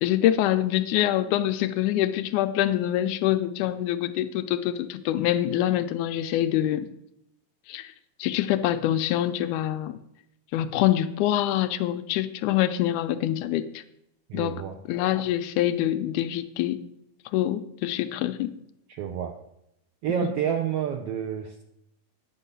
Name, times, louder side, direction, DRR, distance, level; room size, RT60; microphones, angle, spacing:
voice 1, 0.0-6.9 7.7-7.9 8.2-10.0 10.5-13.8 14.3-16.8 17.3-18.5 20.2-20.3, left 12 dB, 80° left, 10 dB, 2.0 m, -25 dB
voice 2, 14.3-14.8 18.9-19.4 20.0-21.6, right 8 dB, 90° right, 5 dB, 1.3 m, -29 dB
9.8 x 5.5 x 8.1 m, 0.80 s
omnidirectional pair, 3.6 m